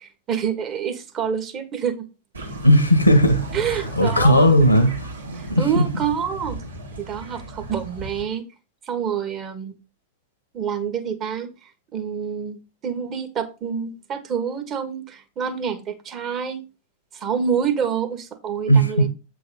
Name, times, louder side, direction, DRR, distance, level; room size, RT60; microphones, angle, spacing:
voice 1, 0.0-2.1 3.5-4.6 5.3-6.6 7.0-8.4 8.9-9.7 10.5-16.6 17.1-19.1, right 7 dB, 30° right, 1.3 m, -27 dB
sound 1, 2.3-8.2, right 2 dB, 75° right, 1.5 m, -34 dB
voice 2, 2.6-3.4 4.0-4.9 5.5-5.8 18.7-18.9, equal, 85° left, 1.2 m, -15 dB
8.2 x 3.9 x 5.1 m
figure-of-eight pair, 90°, 0 cm